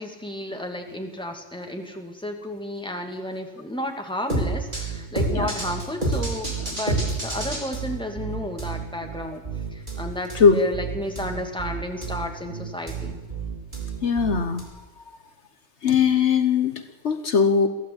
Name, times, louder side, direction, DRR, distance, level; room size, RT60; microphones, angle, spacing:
voice 1, 0.0-9.4 9.7-13.2, left 1 dB, 5° left, 3 dB, 2.6 m, -32 dB
sound 1, 4.3-14.6, right 3 dB, 40° right, 5.7 m, -29 dB
voice 2, 14.0-14.7 15.8-17.7, left 6 dB, 65° left, 8 dB, 1.4 m, -20 dB
22.5 x 15.5 x 8.8 m, 1.1 s
omnidirectional pair, 1.2 m